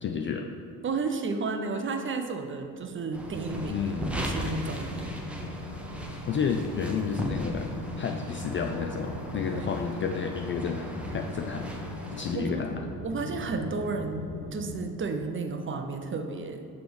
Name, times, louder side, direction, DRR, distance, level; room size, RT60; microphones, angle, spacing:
voice 1, 0.0-0.5 3.7-4.1 6.3-11.7 12.1-12.8, left 6 dB, 30° left, 3 dB, 0.3 m, -31 dB
voice 2, 0.8-3.8 4.0-5.3 9.5-9.7 12.3-12.6 13.0-16.7, right 4 dB, 25° right, 5 dB, 0.5 m, -32 dB
sound 1, 3.1-14.8, left 1 dB, 70° left, 1.3 m, -39 dB
sound 2, 3.1-12.3, equal, 5° right, 0.8 m, -38 dB
5.9 x 3.4 x 5.0 m, 2.5 s
figure-of-eight pair, 45°, 47 cm